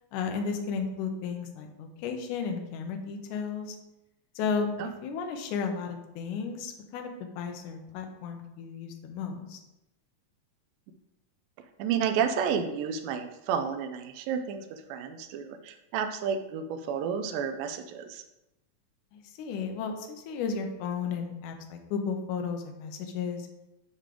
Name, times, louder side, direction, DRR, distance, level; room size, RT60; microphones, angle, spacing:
voice 1, 0.1-3.8 4.4-4.7 5.0-9.6 19.1-23.5, left 5 dB, 75° left, 4 dB, 2.2 m, -34 dB
voice 2, 11.8-18.2, right 7 dB, 90° right, 7 dB, 2.3 m, -31 dB
6.9 x 5.0 x 3.7 m, 0.91 s
omnidirectional pair, 3.9 m